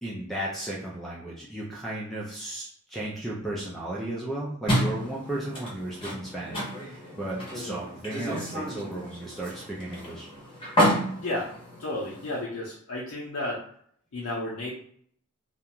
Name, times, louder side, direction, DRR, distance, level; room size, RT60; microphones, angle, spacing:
voice 1, 0.0-10.3, right 1 dB, ahead, -5 dB, 0.4 m, -35 dB
sound 1, 4.7-12.4, equal, 25° left, 0.7 m, -30 dB
voice 2, 11.2-11.5 11.8-13.6 14.1-14.7, left 1 dB, 75° left, -5 dB, 0.6 m, -32 dB
2.4 x 2.2 x 2.9 m, 0.63 s
head